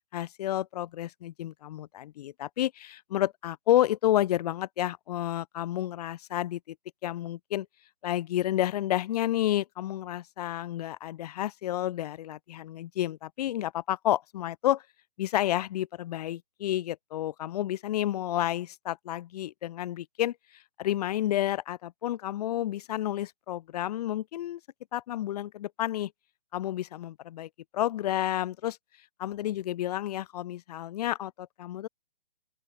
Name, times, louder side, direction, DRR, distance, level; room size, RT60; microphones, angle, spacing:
voice 1, 0.1-6.8 7.0-7.7 8.0-14.8 15.2-20.4 20.8-24.6 24.9-26.1 26.5-28.8 29.2-31.9, left 13 dB, 40° left, 1.9 m, -30 dB
open air
hypercardioid pair, 145°, 30 cm